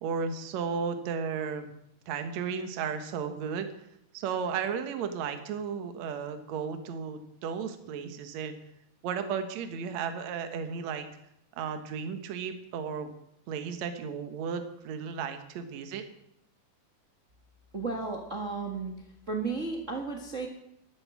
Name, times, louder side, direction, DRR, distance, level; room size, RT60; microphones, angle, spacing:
voice 1, 0.0-1.7 2.1-3.7 4.1-8.6 9.0-11.1 11.6-13.1 13.5-16.0, right 6 dB, 60° right, 7 dB, 2.2 m, -34 dB
voice 2, 17.7-18.9 19.3-20.5, right 4 dB, 80° right, 1 dB, 0.6 m, -33 dB
13.5 x 12.0 x 6.1 m, 0.77 s
omnidirectional pair, 4.1 m